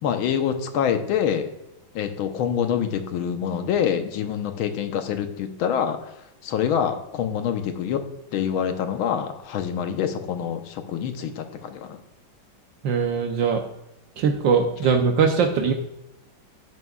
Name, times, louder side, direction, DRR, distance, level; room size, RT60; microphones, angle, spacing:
voice 1, 0.0-1.5 2.0-6.1 6.4-8.0 8.3-12.0, left 8 dB, 90° left, 7 dB, 1.7 m, -26 dB
voice 2, 12.8-13.6 14.2-15.7, right 5 dB, 70° right, 4 dB, 1.4 m, -21 dB
11.0 x 9.5 x 2.3 m, 0.90 s
omnidirectional pair, 2.2 m